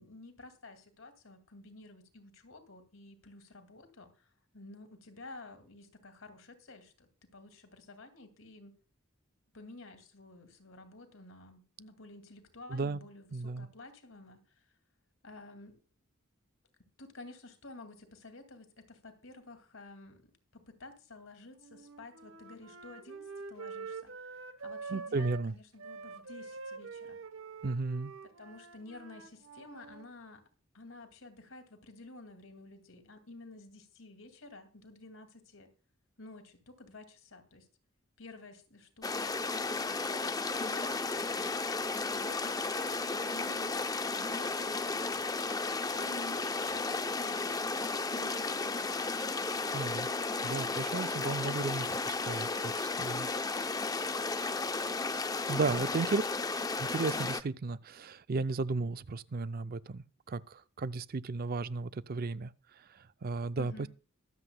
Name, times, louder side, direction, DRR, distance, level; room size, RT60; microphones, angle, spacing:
voice 1, 0.0-4.3 4.5-8.7 9.5-14.4 15.2-15.8 17.0-27.2 28.2-30.4 30.7-35.7 36.2-37.7 38.2-41.6 42.1-43.9 44.2-45.2 45.9-47.4 48.1-50.9 51.2-52.7 63.5-63.9, left 2 dB, 70° left, 2.3 m, -51 dB
voice 2, 12.7-13.0 13.3-13.7 24.9-25.5 27.6-28.1 49.7-50.1 50.4-53.3 55.5-56.2 56.8-62.5 63.2-63.9, right 3 dB, 45° right, 0.4 m, -34 dB
Wind instrument woodwind instrument, 21.6-25.5 25.8-30.1, right 4 dB, 70° right, 0.9 m, -46 dB
sound 1, 39.0-57.4, left 3 dB, 20° left, 0.5 m, -34 dB
23.0 x 7.9 x 2.2 m
head